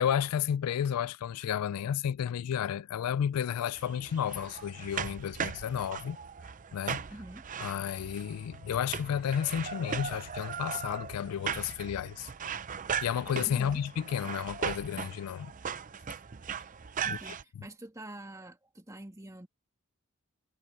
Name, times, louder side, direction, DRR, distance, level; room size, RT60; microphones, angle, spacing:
voice 1, 0.0-6.2 6.7-7.0 7.6-12.3 13.0-15.5 17.1-17.6, left 9 dB, 90° left, 0.3 m, -32 dB
sound 1, 3.7-17.4, right 7 dB, 35° right, 0.5 m, -38 dB
voice 2, 7.1-7.4 13.5-13.8 17.0-19.5, right 1 dB, 15° right, 1.8 m, -46 dB
head